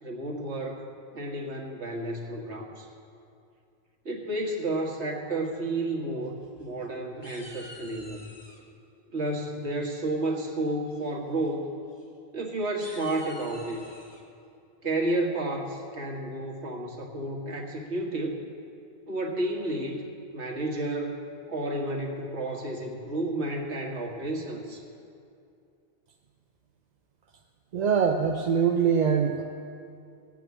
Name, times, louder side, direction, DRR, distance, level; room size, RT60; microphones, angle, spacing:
voice 1, 0.0-0.9 1.1-2.9 4.1-8.3 9.1-11.7 12.3-13.8 14.8-18.4 19.1-21.2 21.5-24.8, right 1 dB, 85° right, 0 dB, 1.8 m, -31 dB
sound 1, 6.2-6.9 7.2-8.6 10.0-10.4 10.9-11.1 11.4-11.5 11.9-12.0 12.6-14.2, equal, 25° left, 1.8 m, -49 dB
voice 2, 27.7-29.4, right 6 dB, 50° right, 4 dB, 0.6 m, -23 dB
18.0 x 6.0 x 8.3 m, 2.5 s
omnidirectional pair, 1.1 m